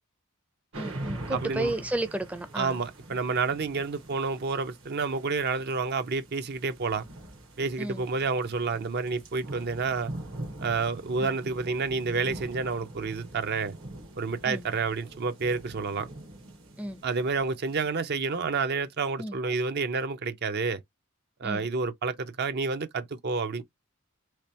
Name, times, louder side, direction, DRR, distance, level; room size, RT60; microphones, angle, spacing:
voice 1, 0.7-2.8 7.8-8.0 11.2-11.3 14.4-14.6 16.8-17.0 19.2-19.4 21.4-21.7, right 1 dB, 5° right, 0.5 m, -33 dB
sound 1, 0.7-18.5, right 1 dB, 70° right, 1.3 m, -43 dB
voice 2, 1.3-1.7 2.5-7.1 7.6-10.1 10.6-13.7 14.2-16.1 17.0-20.8 21.4-23.6, right 4 dB, 55° right, 0.5 m, -29 dB
3.3 x 3.2 x 2.8 m
head